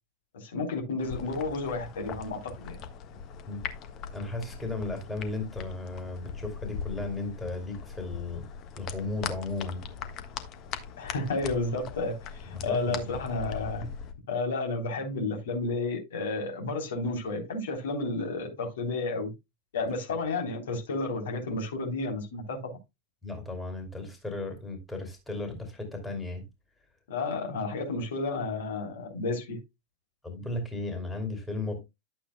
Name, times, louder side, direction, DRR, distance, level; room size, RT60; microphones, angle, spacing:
voice 1, 0.3-2.8 11.0-13.9 14.3-19.3 19.7-22.7 27.1-29.6, left 3 dB, 60° left, 3.6 m, -31 dB
sound 1, 1.0-14.1, left 7 dB, 35° left, 1.4 m, -40 dB
voice 2, 4.1-8.5 8.8-9.9 12.5-13.2 23.2-26.4 30.2-31.9, left 2 dB, 10° left, 2.8 m, -35 dB
11.5 x 8.1 x 2.2 m
figure-of-eight pair, 90°, 0 cm